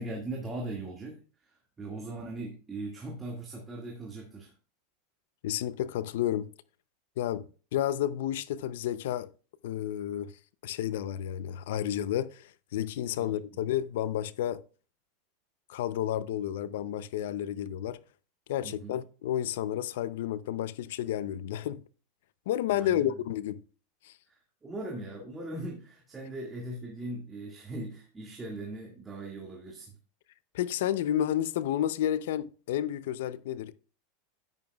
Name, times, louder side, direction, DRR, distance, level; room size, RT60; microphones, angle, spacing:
voice 1, 0.0-4.5 13.2-13.4 18.6-19.0 22.7-23.2 24.3-24.4 24.6-29.9, right 2 dB, 15° right, 2.0 m, -39 dB
voice 2, 5.4-6.5 7.2-7.5 7.7-9.3 9.6-10.3 10.6-14.6 15.7-18.0 18.5-21.8 22.5-23.6 24.0-24.1 30.5-33.7, left 11 dB, 75° left, 0.6 m, -31 dB
11.0 x 9.1 x 2.3 m
supercardioid pair, 120°, 0 cm